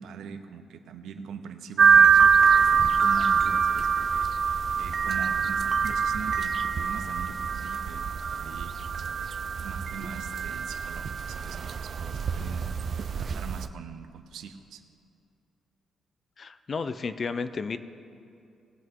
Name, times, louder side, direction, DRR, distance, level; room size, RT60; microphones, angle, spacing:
voice 1, 0.0-4.3 4.8-8.7 9.2-9.3 9.6-12.7 13.1-14.8, right 6 dB, 80° right, 8 dB, 0.7 m, -42 dB
sound 1, 1.8-13.7, right 6 dB, 40° right, 0.4 m, -24 dB
voice 2, 16.4-17.8, left 4 dB, 35° left, 12 dB, 0.4 m, -32 dB
20.0 x 8.0 x 3.7 m, 2.5 s
cardioid pair, 145°, 0 cm